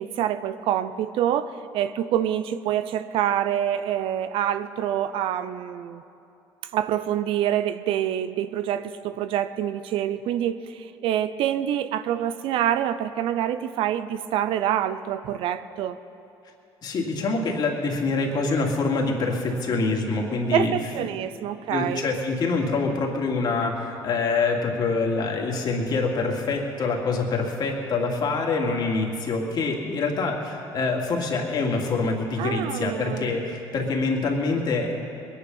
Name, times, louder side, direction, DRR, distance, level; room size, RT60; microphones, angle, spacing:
voice 1, 0.0-6.0 6.7-16.0 20.5-22.0 32.4-33.3, right 10 dB, 70° right, 12 dB, 0.6 m, -26 dB
voice 2, 16.8-20.7 21.7-34.9, left 3 dB, 50° left, 0 dB, 2.5 m, -25 dB
21.0 x 10.0 x 5.5 m, 2.6 s
cardioid pair, 95°, 9 cm